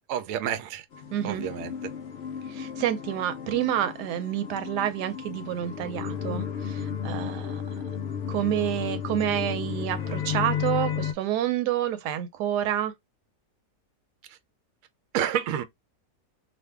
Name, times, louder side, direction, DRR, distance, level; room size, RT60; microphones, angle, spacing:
voice 1, 0.1-0.8 1.2-1.7 15.1-15.6, right 10 dB, 70° right, 0.8 m, -29 dB
sound 1, 0.9-11.1, left 8 dB, 85° left, 0.5 m, -33 dB
voice 2, 1.1-1.4 2.5-7.8 8.3-12.9, right 11 dB, 85° right, 1.2 m, -28 dB
2.6 x 2.5 x 3.2 m
omnidirectional pair, 1.7 m